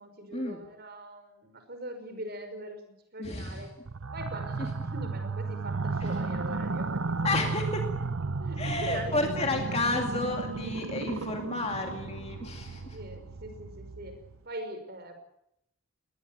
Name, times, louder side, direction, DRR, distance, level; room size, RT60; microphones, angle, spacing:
voice 1, 0.0-3.7 4.1-7.5 7.8-8.1 8.4-9.4 10.8-10.9 11.2-11.5 12.9-14.1 14.4-15.1, right 1 dB, 50° right, 7 dB, 5.6 m, -42 dB
voice 2, 3.2-3.6 6.0-6.1 7.2-7.8 8.6-13.0, left 2 dB, 30° left, 3 dB, 2.4 m, -31 dB
sound 1, 3.9-14.4, right 3 dB, 80° right, 0.8 m, -34 dB
20.5 x 20.0 x 8.8 m, 0.79 s
head